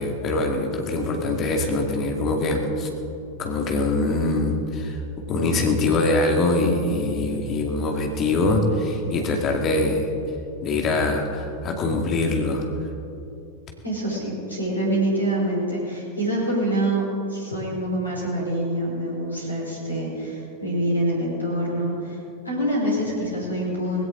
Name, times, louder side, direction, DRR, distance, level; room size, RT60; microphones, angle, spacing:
voice 1, 0.0-2.9 3.4-5.0 5.3-10.1 10.6-12.7, left 2 dB, 30° left, 2 dB, 2.4 m, -23 dB
voice 2, 13.8-17.0 17.3-22.2 22.4-24.0, right 1 dB, 85° left, -4 dB, 5.0 m, -25 dB
19.0 x 17.0 x 4.0 m, 2.7 s
figure-of-eight pair, 90°, 0 cm